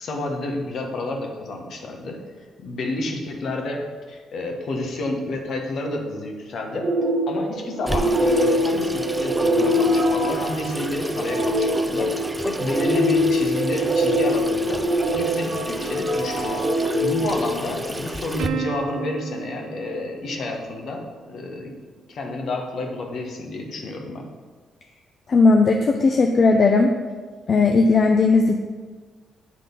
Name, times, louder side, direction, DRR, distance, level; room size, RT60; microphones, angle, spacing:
voice 1, 0.0-6.9 7.3-14.8 15.1-21.7 22.1-24.2, left 2 dB, 65° left, 2 dB, 1.2 m, -30 dB
sound 1, 6.8-18.1, equal, 45° right, 1.1 m, -23 dB
Water tap faucet / Sink (filling or washing), 7.9-18.5, right 1 dB, 10° right, 0.4 m, -32 dB
Plucked string instrument, 18.4-21.1, right 9 dB, 85° right, 0.6 m, -34 dB
voice 2, 25.3-26.9 27.5-28.6, left 3 dB, 45° left, 3 dB, 0.5 m, -16 dB
8.4 x 3.8 x 5.3 m, 1.4 s
cardioid pair, 90°, 0 cm